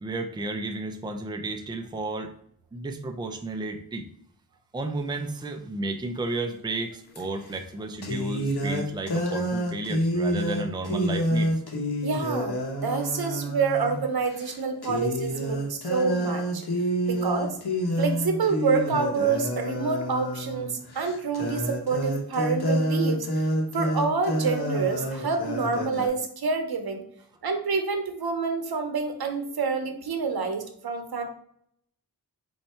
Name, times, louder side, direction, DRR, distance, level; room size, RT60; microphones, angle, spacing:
voice 1, 0.0-2.3 2.7-4.1 4.7-11.5, right 2 dB, 10° right, 5 dB, 0.5 m, -32 dB
sound 1, 7.1-7.2 8.0-14.0 14.4-14.6 14.8-26.1, equal, 80° left, 1.1 m, -28 dB
voice 2, 12.0-16.6 17.1-17.6 18.0-23.5 23.7-27.0 27.4-31.2, right 4 dB, 70° right, 5 dB, 0.8 m, -27 dB
4.4 x 2.7 x 4.3 m, 0.66 s
wide cardioid pair, 90°, 38 cm